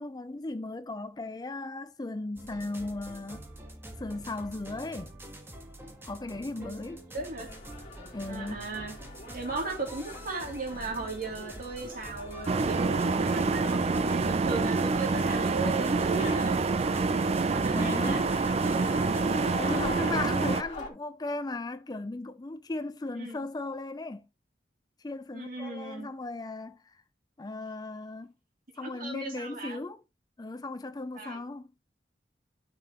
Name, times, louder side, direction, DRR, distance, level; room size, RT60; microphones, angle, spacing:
voice 1, 0.0-3.4 4.0-5.1 6.1-7.0 8.1-8.6 17.7-18.3 19.5-24.3 25.0-27.0 27.4-28.3 28.8-30.0 30.4-31.7, left 2 dB, 25° left, 0.5 m, -37 dB
sound 1, 2.4-19.5, right 1 dB, 15° right, 1.4 m, -46 dB
voice 2, 7.1-7.5 8.3-9.0 9.3-16.7 17.4-18.2 23.2-23.4 25.3-26.1 28.8-29.8 31.1-31.4, right 3 dB, 50° right, 3.0 m, -37 dB
sound 2, 7.5-20.9, left 3 dB, 40° left, 2.8 m, -43 dB
sound 3, 12.5-20.6, right 4 dB, 35° right, 0.4 m, -27 dB
9.6 x 6.0 x 3.0 m
head